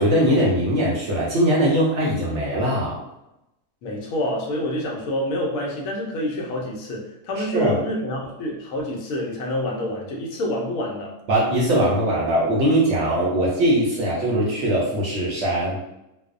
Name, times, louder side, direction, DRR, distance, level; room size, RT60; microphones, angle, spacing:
voice 1, 0.0-3.0 7.4-7.8 11.3-15.8, right 1 dB, 65° right, -4 dB, 0.7 m, -21 dB
voice 2, 3.8-11.1, left 1 dB, 70° left, -1 dB, 0.9 m, -27 dB
2.5 x 2.0 x 2.4 m, 0.86 s
omnidirectional pair, 1.6 m